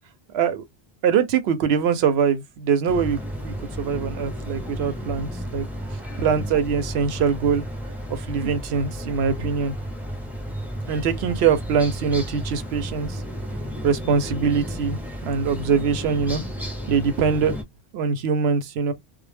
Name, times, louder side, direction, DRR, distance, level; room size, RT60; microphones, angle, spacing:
voice 1, 0.3-0.6 1.0-5.6 6.2-7.6 8.1-9.7 10.9-13.2 13.8-16.4 16.9-17.6 17.9-18.9, right 6 dB, 90° right, 0.8 m, -23 dB
sound 1, 2.9-17.6, equal, ahead, 0.5 m, -32 dB
2.1 x 2.0 x 3.2 m
omnidirectional pair, 1.0 m